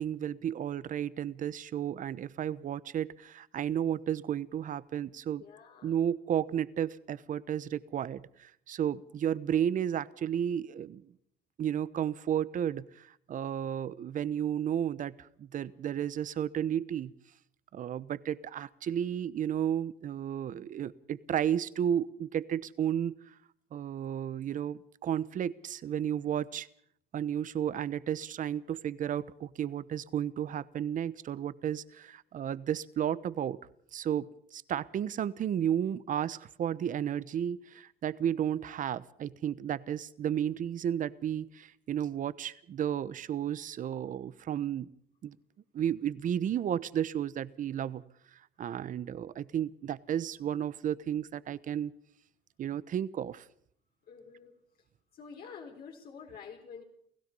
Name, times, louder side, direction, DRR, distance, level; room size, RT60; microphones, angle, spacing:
voice 1, 0.0-5.4 5.8-11.1 11.6-17.1 17.7-23.2 23.7-26.7 27.1-33.6 33.9-44.9 45.2-45.4 45.7-48.0 48.6-51.9 52.6-53.4, right 9 dB, 50° right, 18 dB, 1.0 m, -33 dB
voice 2, 5.4-6.0 54.1-54.5 55.1-56.8, left 6 dB, 65° left, 0 dB, 4.4 m, -48 dB
29.5 x 16.5 x 5.4 m, 0.66 s
cardioid pair, 110°, 17 cm